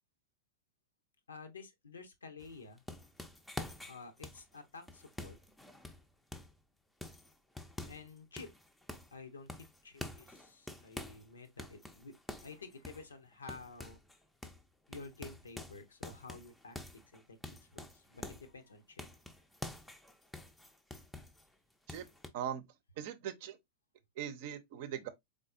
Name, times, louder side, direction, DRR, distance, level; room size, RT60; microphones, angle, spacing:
voice 1, 1.3-2.8 3.9-5.4 7.9-8.5 9.1-12.1 12.4-14.0 14.9-16.8 17.1-17.4 17.7-19.1, left 4 dB, 75° left, 0.8 m, -51 dB
sound 1, 2.4-6.6 7.0-8.1 8.4-9.2 9.5-11.3 11.6-14.2 14.4-14.6 14.9-18.5 19.0-21.5 21.9-22.3, left 2 dB, 5° left, 0.6 m, -47 dB
voice 2, 23.0-23.6 24.2-25.1, right 9 dB, 50° right, 0.6 m, -40 dB
4.0 x 3.7 x 2.5 m
figure-of-eight pair, 90°, 0 cm